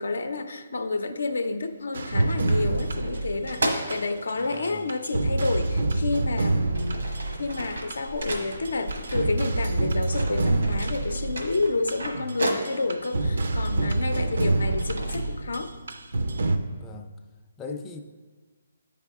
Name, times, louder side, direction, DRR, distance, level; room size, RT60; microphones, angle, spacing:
voice 1, 0.0-7.1 7.4-15.7 17.7-17.8, left 3 dB, 80° left, 8 dB, 0.6 m, -30 dB
sound 1, 1.4-1.7 2.0-4.6 5.8-5.9 6.5-9.8 10.1-13.1 13.7-15.2, right 1 dB, 90° right, 1.2 m, -34 dB
sound 2, 1.9-4.3 4.6-8.3 8.6-16.6, right 2 dB, 75° right, 0.5 m, -27 dB
voice 2, 4.4-5.0 14.1-14.6 16.7-17.1 17.6-18.0, left 3 dB, 10° left, 2 dB, 0.4 m, -41 dB
8.2 x 4.8 x 3.6 m, 1.4 s
hypercardioid pair, 150°, 0 cm